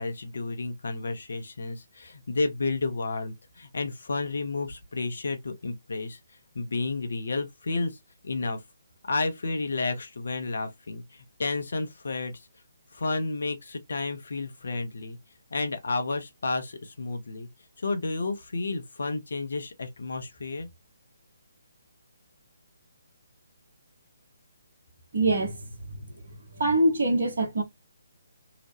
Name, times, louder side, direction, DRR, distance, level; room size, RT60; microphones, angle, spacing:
voice 1, 0.0-6.2 6.5-7.9 8.2-8.6 9.0-12.3 12.9-15.2 15.5-17.5 17.8-20.7, left 3 dB, 60° left, 0.7 m, -31 dB
voice 2, 25.1-26.1 26.6-27.6, right 2 dB, 55° right, 1.0 m, -24 dB
2.9 x 2.1 x 2.9 m
figure-of-eight pair, 140°, 0 cm